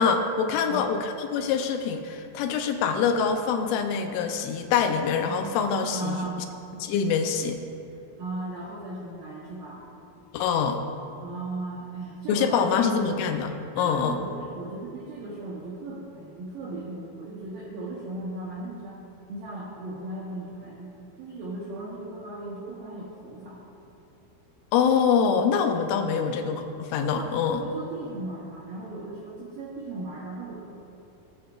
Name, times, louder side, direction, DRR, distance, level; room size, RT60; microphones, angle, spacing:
voice 1, 0.0-6.2 6.8-7.6 10.3-10.8 12.3-14.2 24.7-27.6, left 6 dB, 85° left, 5 dB, 3.2 m, -25 dB
voice 2, 0.5-0.9 5.9-6.5 8.2-9.9 11.2-13.1 13.8-19.0 19.3-20.9 21.2-23.6 26.1-26.3 27.1-30.6, right 2 dB, 75° right, -5 dB, 2.1 m, -37 dB
19.5 x 8.5 x 2.5 m, 2.7 s
omnidirectional pair, 5.6 m